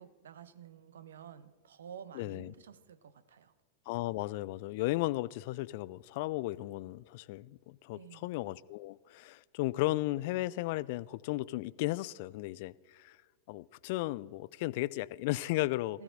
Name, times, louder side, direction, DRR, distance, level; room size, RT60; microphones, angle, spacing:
voice 1, 0.0-3.5 7.9-8.3 15.9-16.0, right 8 dB, 65° right, 0.7 m, -51 dB
voice 2, 2.2-2.5 3.9-13.2 13.5-16.0, left 18 dB, 50° left, 0.3 m, -35 dB
18.5 x 15.5 x 2.6 m
figure-of-eight pair, 90°, 0 cm